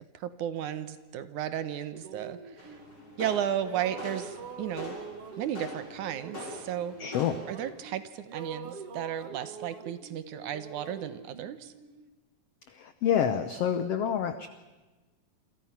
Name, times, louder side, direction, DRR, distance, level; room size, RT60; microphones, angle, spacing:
voice 1, 0.1-2.8 3.2-5.0 5.4-7.0 7.5-11.7, right 10 dB, 70° right, 13 dB, 2.2 m, -34 dB
sound 1, 1.9-3.3 3.6-8.0 8.3-12.1, right 5 dB, 50° right, 2.1 m, -44 dB
sound 2, 2.6-7.7, left 2 dB, 30° left, 6.9 m, -44 dB
voice 2, 7.0-7.4 12.7-14.5, left 9 dB, 80° left, 11 dB, 1.4 m, -28 dB
28.0 x 26.0 x 5.9 m, 1.2 s
omnidirectional pair, 4.0 m